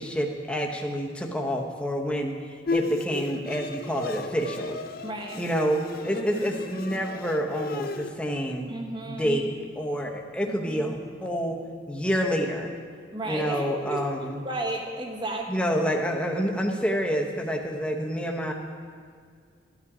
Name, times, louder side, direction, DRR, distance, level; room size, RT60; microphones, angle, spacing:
voice 1, 0.0-2.4 2.7-4.8 5.4-8.7 9.1-11.6 11.9-12.7 13.2-14.4 15.5-18.5, equal, 5° left, 1 dB, 0.9 m, -28 dB
Bowed string instrument, 2.7-8.1, left 3 dB, 50° left, 0.5 m, -34 dB
voice 2, 5.0-5.4 6.1-6.9 8.7-9.4 10.5-11.0 13.1-15.7, right 2 dB, 25° right, 2 dB, 1.1 m, -34 dB
13.5 x 9.9 x 4.9 m, 2.1 s
head